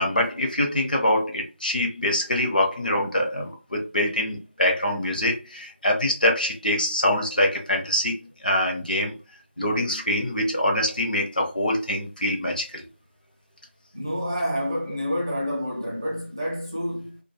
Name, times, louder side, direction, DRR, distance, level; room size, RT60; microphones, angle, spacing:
voice 1, 0.0-8.2 8.4-9.2 9.6-12.8, left 1 dB, 45° left, 0.7 m, -24 dB
voice 2, 13.9-17.2, equal, 20° right, 0.5 m, -28 dB
2.5 x 2.2 x 2.9 m
figure-of-eight pair, 170°, 7 cm